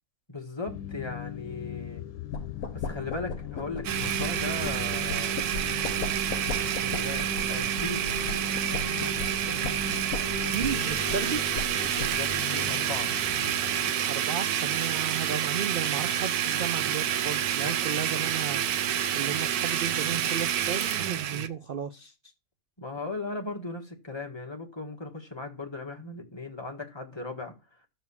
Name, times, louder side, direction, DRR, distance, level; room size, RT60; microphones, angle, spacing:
voice 1, 0.3-2.0 2.7-5.4 6.6-8.1 11.9-13.1 17.6-17.7 22.8-27.5, left 3 dB, 20° left, 1.7 m, -37 dB
sound 1, 0.7-13.9, left 11 dB, 80° left, 1.2 m, -40 dB
sound 2, 2.3-12.4, left 4 dB, 65° left, 1.4 m, -38 dB
Domestic sounds home sounds, 3.8-21.5, right 10 dB, 85° right, 1.3 m, -28 dB
voice 2, 10.5-11.4 14.1-22.1, right 7 dB, 50° right, 0.7 m, -34 dB
13.5 x 4.5 x 7.1 m
omnidirectional pair, 1.6 m